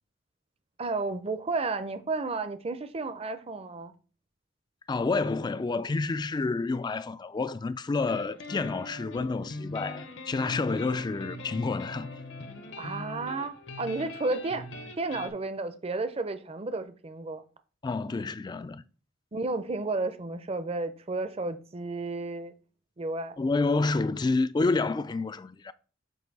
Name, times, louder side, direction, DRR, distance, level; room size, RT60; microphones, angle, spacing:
voice 1, 0.8-3.9 12.8-14.7 15.0-17.4 19.3-22.5 23.0-23.4, right 3 dB, 30° right, 0.6 m, -32 dB
voice 2, 4.9-12.1 17.8-18.8 23.4-25.7, left 3 dB, 25° left, 0.3 m, -29 dB
sound 1, 8.0-15.3, left 2 dB, 70° left, 1.0 m, -41 dB
7.8 x 2.7 x 5.3 m
head